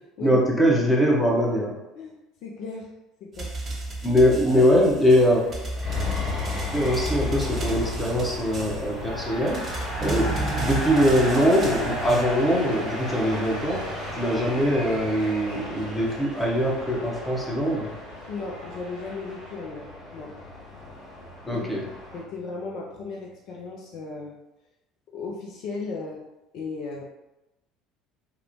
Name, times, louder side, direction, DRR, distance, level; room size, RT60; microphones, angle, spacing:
voice 1, 0.2-1.7 4.0-5.4 6.7-13.9 14.1-17.9 21.5-21.8, equal, 10° left, -2 dB, 0.7 m, -22 dB
voice 2, 2.0-2.9 3.2-3.5 4.0-4.1 4.5-4.7 18.3-20.4 21.5-21.6 22.1-24.4 25.1-26.2 26.5-27.0, left 3 dB, 55° left, -1 dB, 0.3 m, -36 dB
sound 1, 3.3-12.2, right 2 dB, 35° right, 0.6 m, -33 dB
sound 2, 4.9-22.2, left 2 dB, 35° left, 1.2 m, -36 dB
sound 3, 8.0-19.6, right 1 dB, 80° right, 1.0 m, -36 dB
2.9 x 2.0 x 2.6 m, 0.95 s
figure-of-eight pair, 60°, 0 cm